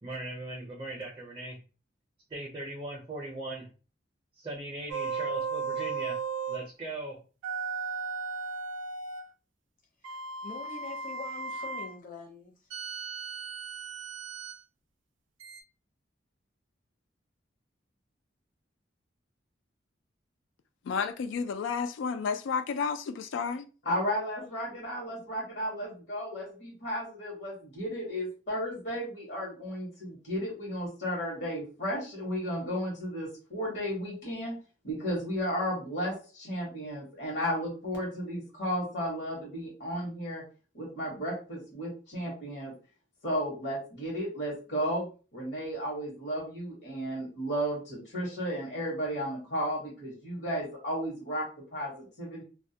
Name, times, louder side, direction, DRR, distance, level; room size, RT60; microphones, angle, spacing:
voice 1, 0.0-1.6 2.3-3.7 4.4-6.2 6.5-7.2, right 1 dB, 25° right, 0.5 m, -39 dB
sound 1, 4.9-6.7 7.4-9.3 10.0-12.0 12.7-14.6 15.4-15.6, right 5 dB, 85° right, 0.4 m, -36 dB
voice 2, 10.4-12.5, left 4 dB, 45° left, 0.7 m, -44 dB
voice 3, 20.8-23.7, left 5 dB, 85° left, 0.3 m, -31 dB
voice 4, 23.8-34.6 34.8-40.4 40.7-42.7 43.2-45.1 45.3-52.4, equal, 65° left, 1.0 m, -34 dB
2.2 x 2.1 x 2.7 m
head